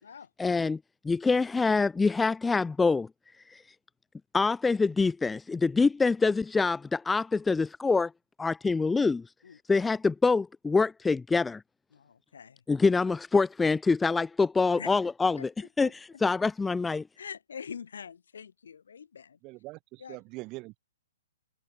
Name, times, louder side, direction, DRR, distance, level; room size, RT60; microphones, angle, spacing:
voice 1, 0.4-3.1 3.5-3.6 4.3-8.1 8.4-9.2 9.7-11.6 12.7-15.5 15.8-17.0, left 4 dB, 10° left, 0.3 m, -25 dB
voice 2, 11.9-12.6 14.8-14.9 15.4-15.5 15.8-15.9 17.2-19.4 20.0-20.2, left 7 dB, 70° left, 4.7 m, -44 dB
voice 3, 19.4-20.8, right 22 dB, 30° right, 1.6 m, -43 dB
figure-of-eight pair, 120°, 0 cm